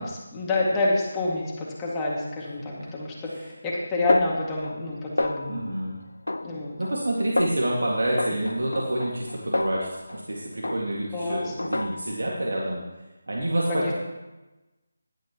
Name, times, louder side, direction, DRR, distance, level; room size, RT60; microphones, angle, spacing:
voice 1, 0.0-5.6 6.4-6.8 11.1-11.7 13.7-13.9, left 2 dB, 15° left, -5 dB, 2.2 m, -28 dB
Snare drum, 4.1-4.9 5.2-5.7 6.3-7.0 7.4-7.7 8.2-10.3 10.6-11.1 11.6-12.3, left 2 dB, 80° left, 0.4 m, -30 dB
voice 2, 5.5-6.0 6.8-12.8 13.3-13.9, right 1 dB, 70° right, -3 dB, 2.1 m, -28 dB
14.5 x 11.5 x 3.1 m, 1.1 s
figure-of-eight pair, 160°, 0 cm